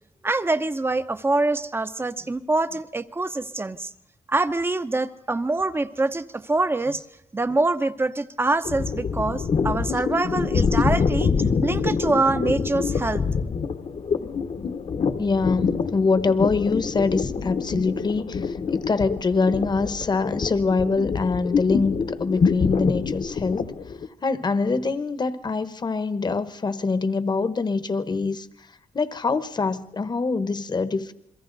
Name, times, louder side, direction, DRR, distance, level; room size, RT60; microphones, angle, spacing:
voice 1, 0.2-3.9 4.3-7.0 7.3-11.3 11.6-13.3, right 2 dB, 20° right, 11 dB, 0.9 m, -25 dB
sound 1, 8.6-24.1, left 5 dB, 55° left, 1.2 m, -25 dB
voice 2, 15.2-23.7 24.2-28.5 28.9-31.1, left 4 dB, 35° left, 12 dB, 1.1 m, -24 dB
29.5 x 22.5 x 4.0 m, 0.82 s
wide cardioid pair, 130°, 13 cm